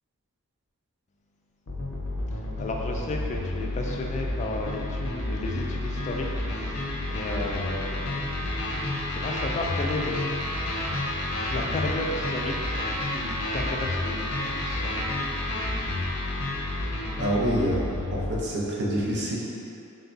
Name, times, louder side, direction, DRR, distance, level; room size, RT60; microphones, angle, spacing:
sound 1, 1.7-18.4, left 1 dB, 65° left, 0.7 m, -30 dB
voice 1, 2.3-6.3 6.5-10.3 11.5-15.0, left 2 dB, 30° left, 1 dB, 0.3 m, -34 dB
voice 2, 17.2-17.8 18.1-19.4, right 1 dB, 50° right, -4 dB, 0.6 m, -26 dB
3.5 x 2.3 x 3.8 m, 2.6 s
head